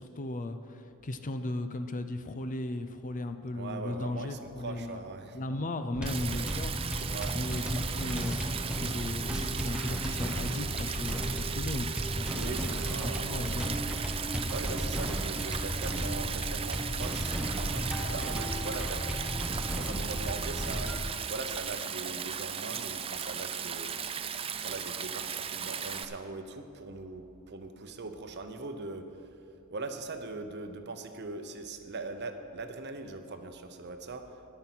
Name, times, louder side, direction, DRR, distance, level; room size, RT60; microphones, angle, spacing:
voice 1, 0.0-5.0 5.3-6.7 7.3-8.5 8.8-13.8, left 2 dB, 35° left, 9 dB, 0.5 m, -36 dB
voice 2, 3.5-5.4 7.0-7.4 12.3-13.3 14.5-19.2 19.7-23.9 24.6-29.3 29.7-34.3, right 3 dB, 50° right, 7 dB, 0.8 m, -41 dB
sound 1, 5.9-21.0, equal, 5° right, 0.9 m, -34 dB
Stream, 6.1-26.1, right 7 dB, 25° right, 0.4 m, -37 dB
10.5 x 9.5 x 6.0 m, 2.6 s
head